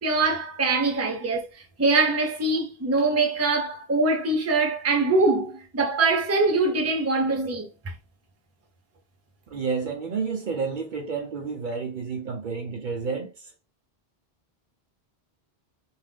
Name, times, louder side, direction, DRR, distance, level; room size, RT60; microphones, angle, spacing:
voice 1, 0.0-7.7, right 3 dB, 20° right, 0.5 m, -23 dB
voice 2, 9.5-13.3, right 5 dB, 60° right, 0.6 m, -30 dB
2.4 x 2.1 x 3.4 m
omnidirectional pair, 1.0 m